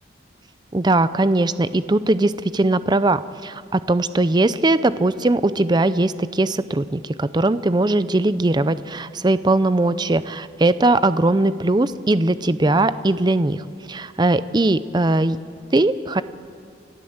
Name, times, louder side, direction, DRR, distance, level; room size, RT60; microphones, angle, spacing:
voice 1, 0.7-15.4 15.7-16.2, right 2 dB, 25° right, 15 dB, 0.5 m, -20 dB
29.5 x 12.0 x 8.0 m, 2.2 s
head